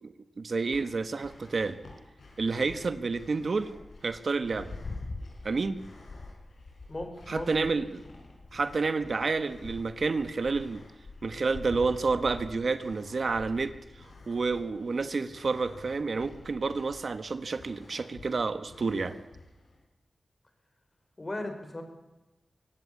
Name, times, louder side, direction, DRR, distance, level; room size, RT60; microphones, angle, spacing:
voice 1, 0.0-1.8 2.4-3.7 4.0-4.7 5.4-5.8 7.3-8.0 8.5-10.8 11.2-13.7 14.3-19.2, right 4 dB, 60° right, 11 dB, 1.2 m, -29 dB
sound 1, 0.6-19.8, left 3 dB, 75° left, 6.7 m, -53 dB
sound 2, 1.4-1.6 2.2-14.7 15.0-15.3 15.6-17.2, left 3 dB, 60° left, 3.9 m, -46 dB
voice 2, 6.9-7.7 21.2-21.8, left 1 dB, 30° left, 6 dB, 5.1 m, -37 dB
24.5 x 16.5 x 8.6 m, 1.0 s
wide cardioid pair, 75°, 0 cm